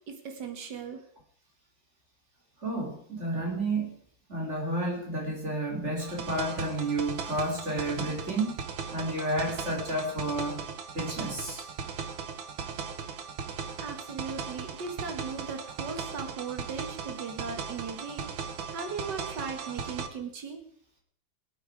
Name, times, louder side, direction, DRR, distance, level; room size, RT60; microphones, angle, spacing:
voice 1, 0.1-1.0 13.8-18.3 18.7-20.6, right 5 dB, 60° right, 5 dB, 2.4 m, -38 dB
voice 2, 2.6-3.9 4.3-8.6 8.9-10.6 10.9-11.6, right 1 dB, 35° right, 0 dB, 3.5 m, -31 dB
sound 1, 6.0-20.1, right 6 dB, 80° right, 1.9 m, -38 dB
23.0 x 8.6 x 4.8 m, 0.62 s
omnidirectional pair, 2.1 m